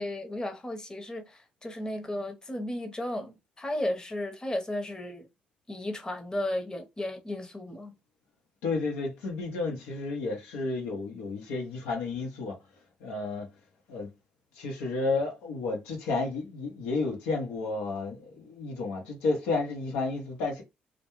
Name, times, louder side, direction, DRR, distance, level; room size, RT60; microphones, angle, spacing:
voice 1, 0.0-5.3 5.7-7.9, left 1 dB, 20° left, 0.7 m, -34 dB
voice 2, 8.6-12.6 13.0-13.5 13.9-14.1 14.5-20.6, left 3 dB, 85° left, 0.7 m, -31 dB
2.3 x 2.1 x 2.9 m
supercardioid pair, 60°, 4 cm